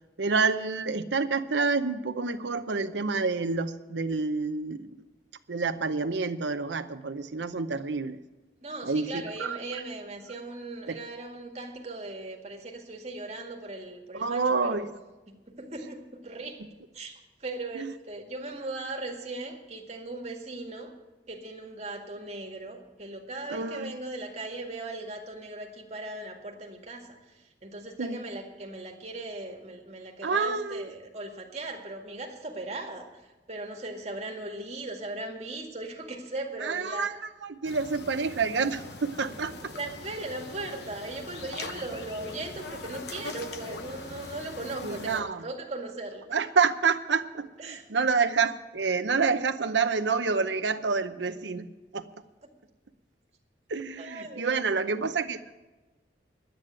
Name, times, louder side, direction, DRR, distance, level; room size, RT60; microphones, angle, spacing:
voice 1, 0.2-4.9 5.5-8.2 8.8-9.8 10.9-11.0 14.1-14.9 17.7-17.9 23.5-23.9 28.0-28.2 30.2-30.9 36.6-37.1 37.4-39.7 44.8-45.4 46.3-51.7 51.9-52.0 53.7-55.5, right 4 dB, 90° right, 9 dB, 0.7 m, -28 dB
voice 2, 8.6-14.9 15.3-16.6 16.9-20.9 21.3-37.1 39.7-46.3 47.6-47.9 52.4-52.5 54.0-54.6, right 2 dB, 40° right, 1 dB, 1.9 m, -38 dB
sound 1, 37.6-45.2, left 3 dB, 70° left, 1.0 m, -41 dB
11.0 x 9.2 x 8.9 m, 1.2 s
head